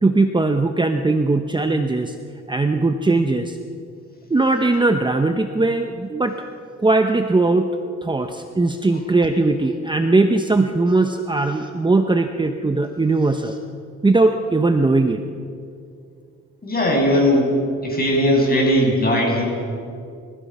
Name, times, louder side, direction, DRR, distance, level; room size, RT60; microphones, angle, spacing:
voice 1, 0.0-2.2 2.5-3.6 4.3-6.3 6.8-7.7 8.0-13.6 14.0-15.2, right 3 dB, 15° right, 6 dB, 1.0 m, -19 dB
voice 2, 16.6-17.6 17.8-19.5, equal, 30° left, 0 dB, 7.0 m, -18 dB
29.5 x 16.0 x 5.6 m, 2.4 s
cardioid pair, 90°, 30 cm